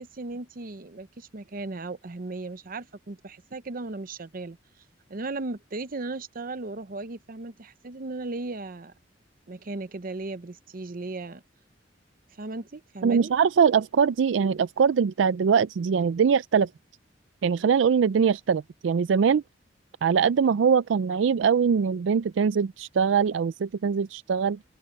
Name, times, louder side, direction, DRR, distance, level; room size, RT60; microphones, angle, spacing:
voice 1, 0.0-4.6 5.1-8.9 9.5-11.4 12.4-13.3, right 2 dB, 50° right, 0.8 m, -36 dB
voice 2, 13.0-16.7 17.4-19.4 20.0-24.6, right 6 dB, 85° right, 0.4 m, -22 dB
open air
head